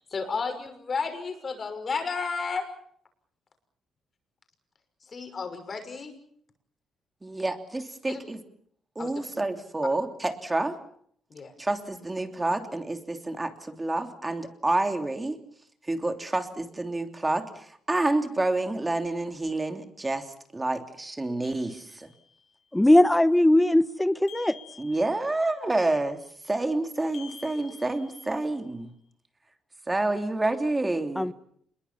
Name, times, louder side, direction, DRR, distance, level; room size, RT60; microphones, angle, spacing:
voice 1, 0.0-2.7 5.0-6.1 8.1-8.2 9.0-9.1 11.3-11.5, left 4 dB, 40° left, 6.1 m, -32 dB
voice 2, 7.2-8.4 8.9-10.8 11.6-15.4 15.8-22.1 24.8-26.2 26.4-28.9 29.9-31.3, right 2 dB, 15° right, 3.1 m, -28 dB
sound 1, 21.4-22.4 24.3-25.5 27.1-28.6, left 8 dB, 80° left, 6.1 m, -50 dB
voice 3, 22.7-24.6 31.2-31.3, left 1 dB, 10° left, 1.1 m, -20 dB
27.0 x 22.0 x 7.2 m
cardioid pair, 90°, 0 cm